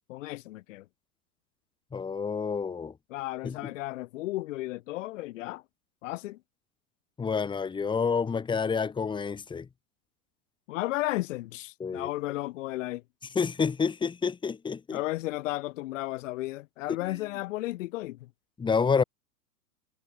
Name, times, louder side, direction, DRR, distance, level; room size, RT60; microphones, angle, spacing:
voice 1, 0.1-0.8 3.1-5.6 6.0-6.4 10.7-13.0 14.9-18.2, left 18 dB, 50° left, 6.7 m, -34 dB
voice 2, 1.9-2.9 3.4-3.7 7.2-9.7 11.8-12.1 13.3-15.0 17.1-17.2 18.6-19.0, left 5 dB, 10° left, 4.0 m, -28 dB
supercardioid pair, 160°, 48 cm